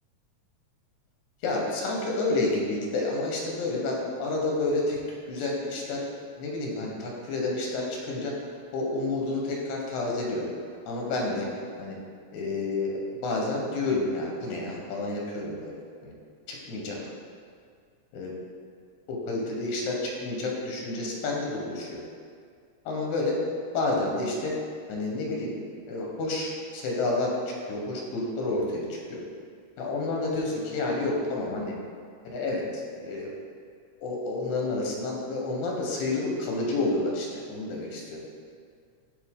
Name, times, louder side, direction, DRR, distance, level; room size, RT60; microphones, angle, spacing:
voice 1, 1.4-5.0 5.3-6.0 6.4-8.3 8.7-10.4 10.9-11.5 11.8-12.0 12.3-12.9 13.2-15.8 16.0-16.1 16.5-17.0 18.1-18.3 19.1-22.0 22.9-23.4 23.7-24.5 24.9-25.6 25.9-29.2 29.8-31.7 32.3-33.3 34.0-38.3, left 2 dB, 80° left, -1 dB, 2.4 m, -29 dB
7.9 x 4.3 x 3.6 m, 2.1 s
omnidirectional pair, 3.3 m